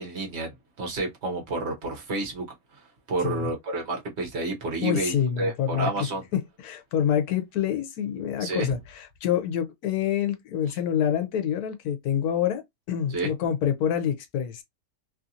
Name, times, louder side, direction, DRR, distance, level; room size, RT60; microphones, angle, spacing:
voice 1, 0.0-2.5 2.7-2.8 3.1-6.2 8.4-8.7 13.1-13.3, right 2 dB, 50° right, 1.1 m, -30 dB
voice 2, 4.8-5.9 6.3-12.6 12.9-14.6, left 9 dB, 85° left, 1.2 m, -27 dB
3.0 x 2.5 x 2.6 m
omnidirectional pair, 1.6 m